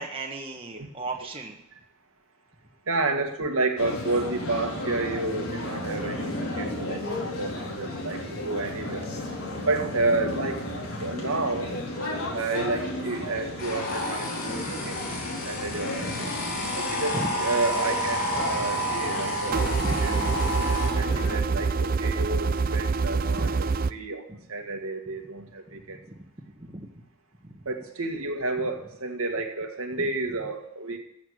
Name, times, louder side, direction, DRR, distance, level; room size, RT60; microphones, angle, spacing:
voice 1, 0.0-1.6 7.3-7.4 9.3-9.8 14.6-15.4 16.2-16.6 17.1-17.3 18.3-18.6 19.2-20.7 21.5-21.7 22.6-22.7 23.4-23.5 25.7-26.2 26.5-27.0 27.4-27.6 30.0-30.1, right 2 dB, 25° right, 1 dB, 1.4 m, -38 dB
voice 2, 2.9-9.0 9.7-10.6 11.0-11.8 12.3-15.0 15.4-16.3 16.7-19.8 20.0-20.1 21.0-24.2 24.5-26.0 27.7-31.0, right 2 dB, 80° right, 3 dB, 1.9 m, -30 dB
sound 1, 3.8-21.4, left 1 dB, 85° left, 4.5 m, -34 dB
sound 2, 13.6-20.9, equal, 45° left, 4.9 m, -30 dB
sound 3, 19.5-23.9, right 4 dB, 40° right, 0.4 m, -26 dB
14.0 x 7.2 x 8.1 m, 0.77 s
head